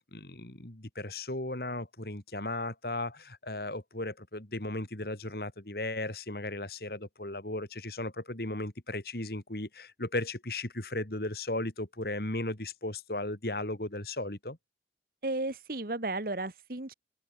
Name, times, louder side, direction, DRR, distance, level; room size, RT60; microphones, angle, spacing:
voice 1, 0.0-14.6, left 2 dB, 55° left, 2.9 m, -36 dB
voice 2, 15.2-16.9, right 2 dB, 55° right, 1.6 m, -34 dB
head